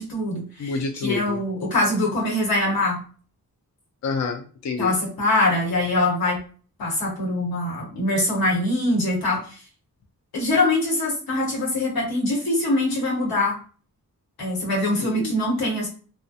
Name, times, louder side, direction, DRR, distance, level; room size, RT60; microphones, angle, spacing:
voice 1, 0.0-0.7 1.0-3.0 4.8-6.4 6.8-9.6 10.3-13.5 14.4-15.9, left 2 dB, 90° left, -3 dB, 1.0 m, -23 dB
voice 2, 0.6-1.4 4.0-4.9 15.0-15.3, left 4 dB, 50° left, 3 dB, 0.4 m, -28 dB
2.4 x 2.1 x 2.6 m, 0.40 s
wide cardioid pair, 85°, 35 cm